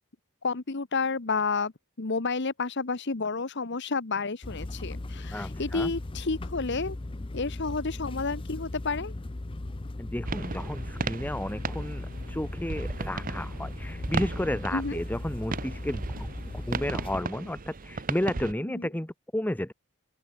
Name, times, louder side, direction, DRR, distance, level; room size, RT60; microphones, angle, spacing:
voice 1, 0.4-1.7 2.0-7.0 7.3-9.1 14.7-15.0 18.7-18.9, left 4 dB, 55° left, 1.1 m, -30 dB
sound 1, 4.4-17.2, left 2 dB, 25° left, 0.6 m, -38 dB
voice 2, 5.3-5.9 10.0-16.3 16.7-19.7, left 1 dB, 10° left, 1.0 m, -32 dB
sound 2, 10.2-18.5, right 3 dB, 40° right, 0.9 m, -36 dB
open air
head